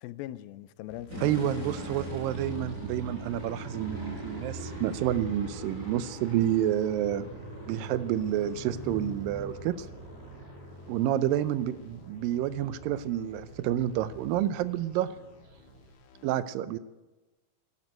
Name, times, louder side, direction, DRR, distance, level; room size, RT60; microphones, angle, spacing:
voice 1, 0.0-1.4, left 14 dB, 90° left, 2.5 m, -41 dB
sound 1, 0.9-16.3, left 2 dB, 60° left, 2.5 m, -54 dB
sound 2, 1.1-15.9, right 2 dB, 20° right, 4.6 m, -43 dB
voice 2, 1.2-7.3 7.7-9.9 10.9-15.1 16.2-16.8, right 11 dB, 80° right, 2.3 m, -29 dB
sound 3, 6.0-13.9 14.7-15.0, right 2 dB, 55° right, 2.5 m, -49 dB
12.5 x 12.0 x 9.3 m
omnidirectional pair, 4.1 m